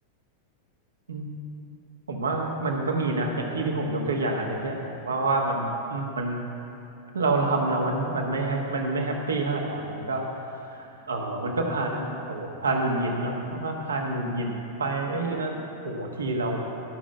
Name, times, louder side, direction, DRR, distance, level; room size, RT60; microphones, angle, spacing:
voice 1, 2.1-4.8 5.0-6.4 7.1-14.5 14.8-16.6, right 2 dB, 75° right, 1 dB, 1.4 m, -28 dB
13.0 x 6.2 x 7.5 m, 2.8 s
figure-of-eight pair, 90°, 0 cm